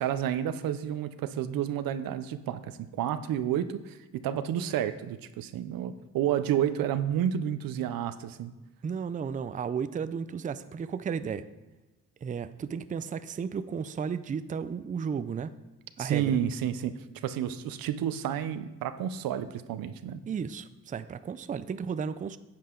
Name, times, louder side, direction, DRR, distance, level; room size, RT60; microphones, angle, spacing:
voice 1, 0.0-8.5 16.0-16.9 17.2-20.2, right 10 dB, 90° right, 11 dB, 0.6 m, -30 dB
voice 2, 8.8-11.5 12.2-15.5 16.0-16.4 20.3-22.4, right 6 dB, 25° right, 12 dB, 0.4 m, -34 dB
10.0 x 7.6 x 3.8 m, 1.1 s
cardioid pair, 100°, 33 cm